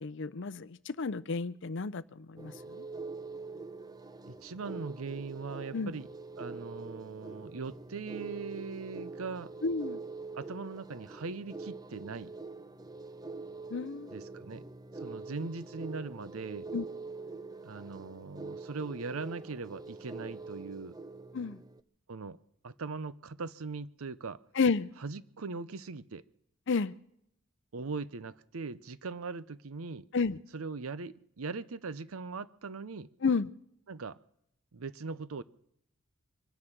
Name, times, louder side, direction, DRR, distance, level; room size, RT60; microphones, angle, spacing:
voice 1, 0.0-2.8 5.7-5.9 9.6-10.0 13.7-14.1 16.7-16.8 21.3-21.6 24.6-24.9 26.7-26.9 30.1-30.4 33.2-33.5, left 4 dB, 60° left, 17 dB, 0.6 m, -31 dB
sound 1, 2.4-21.8, right 3 dB, 20° right, 0.5 m, -45 dB
voice 2, 4.3-6.1 6.4-9.5 10.3-12.3 14.1-14.6 14.9-16.7 17.6-21.0 22.1-22.4 22.6-24.4 25.0-26.2 27.7-30.1 30.5-33.1 33.9-34.2 34.7-35.4, right 4 dB, 85° right, 17 dB, 0.7 m, -40 dB
24.5 x 9.9 x 6.0 m, 0.73 s
head